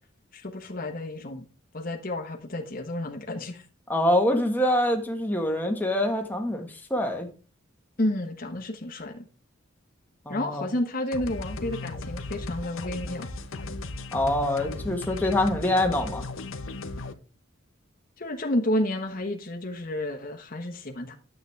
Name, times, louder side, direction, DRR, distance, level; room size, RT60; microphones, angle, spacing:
voice 1, 0.3-1.5 1.7-3.6 8.0-9.3 10.3-13.3 18.2-21.1, left 1 dB, 45° left, 1.2 m, -31 dB
voice 2, 3.9-7.3 10.2-10.7 14.1-16.2, left 1 dB, 10° left, 1.5 m, -25 dB
sound 1, 11.1-17.1, left 2 dB, 85° left, 1.0 m, -36 dB
9.4 x 7.9 x 3.4 m
head